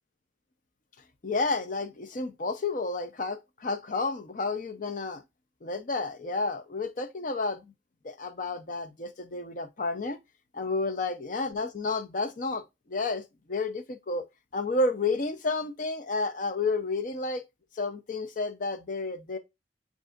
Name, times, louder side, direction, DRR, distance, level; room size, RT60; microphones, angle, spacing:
voice 1, 1.2-5.2 5.6-7.7 8.0-10.2 10.5-12.6 12.9-14.2 14.5-17.4 17.7-19.4, left 3 dB, 45° left, 0.6 m, -31 dB
7.6 x 2.7 x 2.4 m
head